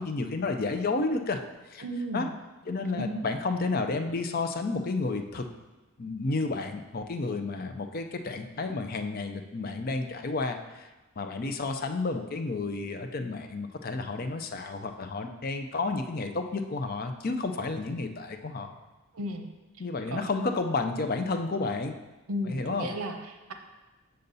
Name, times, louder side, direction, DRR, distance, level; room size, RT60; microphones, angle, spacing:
voice 1, 0.0-1.4 1.7-1.8 2.1-2.3 2.7-5.4 6.0-10.9 11.2-18.7 19.8-21.9 22.5-22.9, left 3 dB, 45° left, 6 dB, 0.5 m, -31 dB
voice 2, 1.8-2.3 2.9-3.2 19.1-19.5 20.1-20.5 22.3-23.5, equal, 80° right, 5 dB, 0.8 m, -34 dB
6.8 x 6.5 x 4.0 m, 1.1 s
head